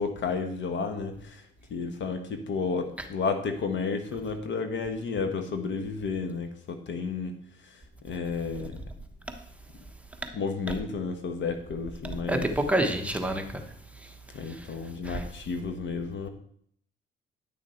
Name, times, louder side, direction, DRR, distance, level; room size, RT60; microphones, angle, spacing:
voice 1, 0.0-1.4 1.7-7.3 8.0-8.8 10.3-12.5 14.3-16.3, left 4 dB, 65° left, 6 dB, 1.3 m, -32 dB
voice 2, 12.0-13.7 14.0-14.1 14.5-14.7 15.0-15.3, right 1 dB, 5° right, 4 dB, 1.2 m, -28 dB
10.0 x 6.4 x 4.4 m, 0.64 s
cardioid pair, 90°, 20 cm